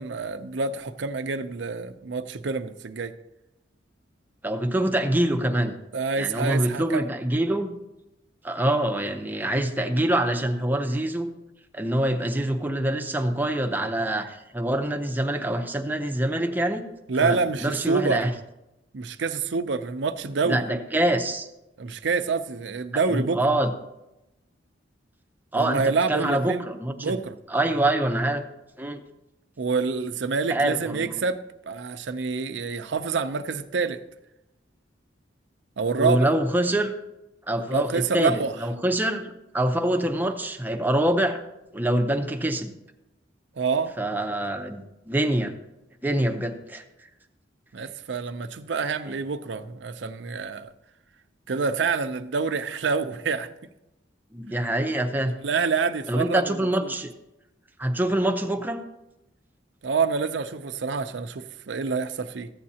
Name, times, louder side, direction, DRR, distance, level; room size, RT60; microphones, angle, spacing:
voice 1, 0.0-3.1 5.9-7.1 17.1-18.2 18.9-20.6 21.8-23.4 25.5-26.7 27.0-27.3 29.6-34.0 35.8-36.3 37.5-38.5 43.6-44.0 47.7-50.7 51.5-53.5 55.4-56.9 59.8-62.5, right 4 dB, 70° right, 9 dB, 0.6 m, -27 dB
voice 2, 4.4-5.7 6.2-7.7 8.4-11.3 11.7-16.8 17.2-18.3 20.4-21.5 22.9-23.7 25.5-27.2 27.5-28.4 28.8-29.0 30.5-31.2 36.0-36.9 37.5-41.4 41.7-42.7 44.0-45.5 46.0-46.8 49.1-49.2 54.3-55.3 56.1-57.1 57.8-58.8, right 1 dB, 10° right, 5 dB, 0.7 m, -25 dB
14.5 x 8.6 x 2.8 m, 0.93 s
head